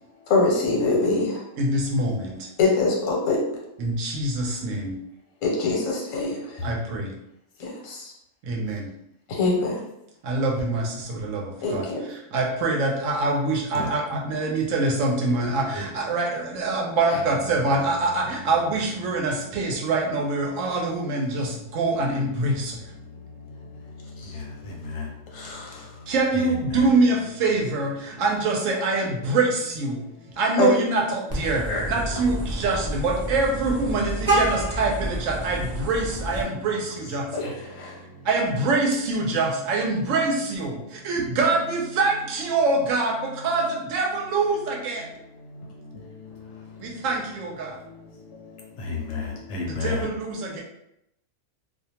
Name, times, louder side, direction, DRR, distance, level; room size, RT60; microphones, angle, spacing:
voice 1, 0.3-1.4 2.6-3.4 5.4-6.6 7.6-8.1 9.3-9.8 11.6-12.0 25.3-25.9 30.6-30.7 31.7-31.8 37.3-38.0, left 3 dB, 85° left, -1 dB, 1.1 m, -24 dB
voice 2, 1.6-2.5 3.8-5.0 6.6-7.1 8.4-8.9 10.2-22.8 26.1-30.0 30.4-37.6 38.2-45.1 46.8-47.8 49.6-50.6, right 3 dB, 80° right, 0 dB, 1.0 m, -25 dB
Vehicle horn car horn honking, 31.3-36.4, right 1 dB, 50° right, 0.5 m, -28 dB
voice 3, 48.9-50.1, left 4 dB, 70° left, 0 dB, 0.8 m, -29 dB
2.4 x 2.2 x 2.8 m, 0.81 s
omnidirectional pair, 1.4 m